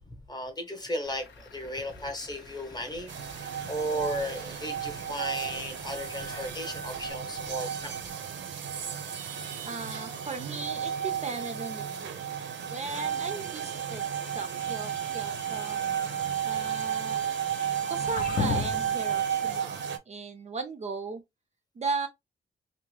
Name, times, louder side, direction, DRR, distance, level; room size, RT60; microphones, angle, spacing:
voice 1, 0.1-8.0, equal, 20° left, 0.8 m, -35 dB
Truck / Idling, 1.0-7.1, left 4 dB, 85° left, 0.9 m, -53 dB
sound 1, 3.1-20.0, right 8 dB, 80° right, 0.6 m, -33 dB
voice 2, 9.7-12.2 12.7-14.1 14.3-15.8 16.4-17.2 17.9-21.2 21.8-22.1, right 4 dB, 35° right, 0.4 m, -37 dB
sound 2, 15.4-16.3 17.8-19.0, left 6 dB, 50° left, 0.4 m, -34 dB
3.5 x 2.0 x 3.1 m
wide cardioid pair, 165°, 19 cm